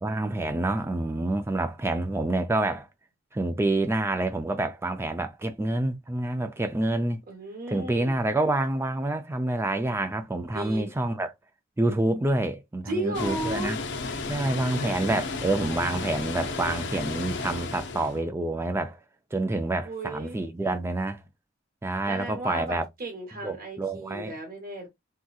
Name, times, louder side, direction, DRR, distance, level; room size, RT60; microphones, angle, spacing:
voice 1, 0.0-2.9 3.3-7.2 7.7-11.3 11.8-13.8 14.3-19.0 19.3-21.2 21.8-22.9 23.4-24.4, right 2 dB, 10° right, 0.3 m, -27 dB
voice 2, 7.3-8.1 10.5-10.9 12.9-13.8 19.8-20.5 22.1-24.9, right 1 dB, 45° right, 0.9 m, -34 dB
Water, 13.1-18.2, left 3 dB, 60° left, 0.6 m, -33 dB
3.5 x 2.8 x 2.3 m
head